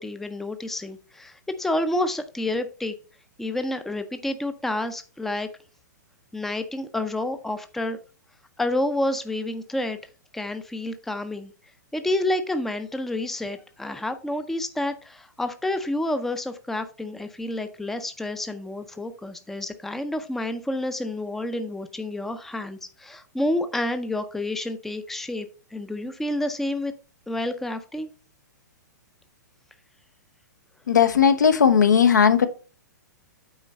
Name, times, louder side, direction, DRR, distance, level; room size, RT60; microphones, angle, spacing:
voice 1, 0.0-2.9 3.4-5.5 6.3-8.0 8.6-10.0 10.3-11.5 11.9-26.9 27.3-28.1, left 1 dB, 5° left, 0.5 m, -29 dB
voice 2, 30.9-32.5, left 7 dB, 70° left, 0.9 m, -17 dB
8.6 x 4.5 x 4.1 m
figure-of-eight pair, 110°, 10 cm